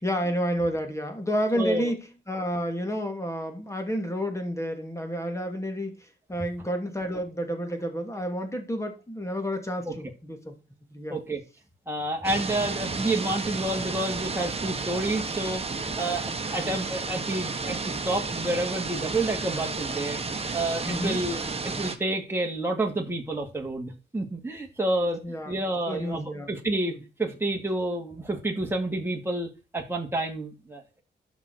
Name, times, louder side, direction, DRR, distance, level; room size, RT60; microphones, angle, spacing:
voice 1, 0.0-10.6 10.9-11.2 20.8-21.2 25.2-26.5 26.9-27.0, equal, 15° left, 5 dB, 2.8 m, -30 dB
voice 2, 1.5-1.9 9.9-10.0 11.1-11.4 11.9-20.2 20.5-25.2 25.5-26.9 27.2-31.0, right 2 dB, 10° right, 0 dB, 2.4 m, -29 dB
sound 1, 12.2-22.0, right 4 dB, 30° right, 1.5 m, -32 dB
11.0 x 6.2 x 6.3 m, 0.32 s
wide cardioid pair, 95°, 19 cm